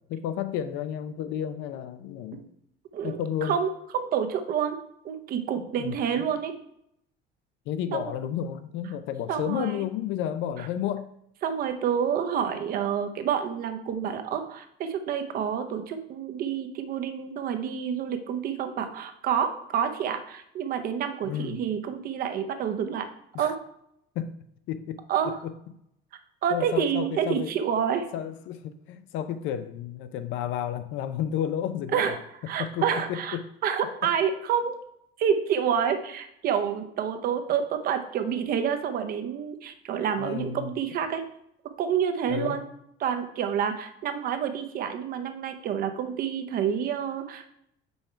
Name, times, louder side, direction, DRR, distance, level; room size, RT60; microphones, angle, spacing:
voice 1, 0.1-2.4 3.0-3.6 5.6-6.0 7.7-11.1 21.2-21.6 23.3-23.5 24.2-24.4 24.7-25.5 26.5-27.5 28.1-32.2 32.6-33.5 34.0-34.1 40.2-40.7 42.3-42.6, left 9 dB, 70° left, 0.5 m, -32 dB
voice 2, 2.9-4.8 5.0-6.5 7.9-8.1 9.3-9.8 10.6-10.7 11.4-23.1 23.4-23.6 25.1-25.4 26.4-28.1 31.9-32.2 32.5-33.4 33.6-34.8 35.2-41.2 41.8-42.6 43.0-47.5, right 8 dB, 45° right, 0.7 m, -28 dB
5.5 x 4.4 x 4.4 m
cardioid pair, 160°, 21 cm